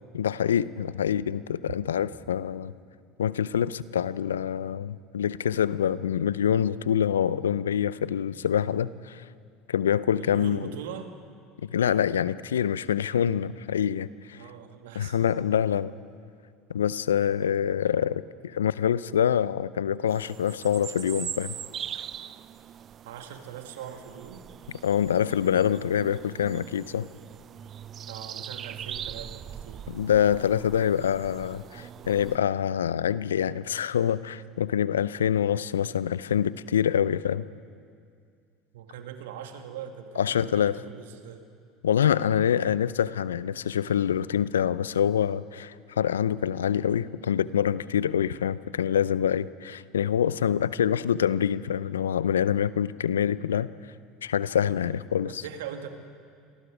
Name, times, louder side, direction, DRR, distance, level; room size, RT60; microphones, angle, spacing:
voice 1, 0.1-2.7 3.2-9.2 9.7-10.7 11.6-14.4 15.0-15.9 16.7-21.5 24.8-27.1 29.9-37.5 40.2-40.8 41.8-53.7 54.2-55.4, left 9 dB, 80° left, 18 dB, 0.5 m, -26 dB
voice 2, 10.1-11.1 14.3-15.2 23.0-24.5 28.1-29.8 38.7-41.4 55.3-55.9, right 9 dB, 75° right, 6 dB, 2.0 m, -41 dB
sound 1, 20.1-32.4, right 9 dB, 40° right, 0.5 m, -41 dB
27.5 x 19.5 x 5.1 m, 2.3 s
hypercardioid pair, 75°, 0 cm